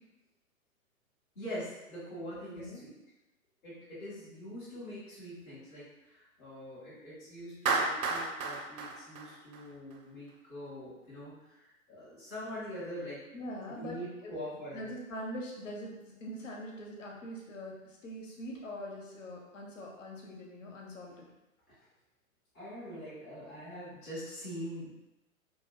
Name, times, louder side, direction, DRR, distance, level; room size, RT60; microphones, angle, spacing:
voice 1, 1.3-3.0 3.6-13.2 13.7-14.9 21.7-21.8 22.5-24.9, equal, 10° left, -13 dB, 0.4 m, -43 dB
Clapping, 7.7-10.0, right 4 dB, 70° right, 0.5 m, -32 dB
voice 2, 13.3-14.3 14.7-21.3, equal, 60° left, -2 dB, 0.7 m, -43 dB
2.5 x 2.0 x 2.6 m, 0.99 s
figure-of-eight pair, 115°, 43 cm